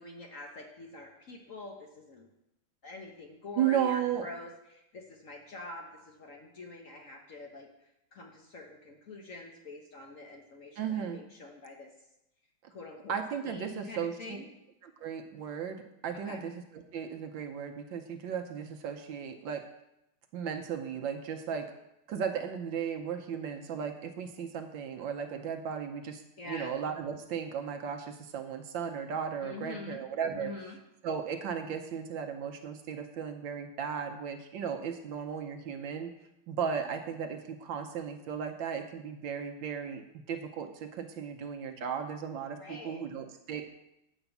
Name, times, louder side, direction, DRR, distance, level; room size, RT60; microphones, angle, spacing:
voice 1, 0.0-2.3 2.8-7.7 8.1-11.9 12.7-13.1 13.4-14.5 16.1-16.4 26.4-26.7 29.4-30.0 30.4-30.8 42.6-43.0, left 2 dB, 50° left, 1 dB, 1.1 m, -45 dB
voice 2, 3.6-4.3 10.8-11.2 13.1-14.4 14.8-19.6 20.3-21.7 22.1-30.5 31.0-36.1 36.5-43.6, right 7 dB, 70° right, 5 dB, 1.4 m, -35 dB
8.8 x 5.1 x 7.0 m, 0.86 s
omnidirectional pair, 2.3 m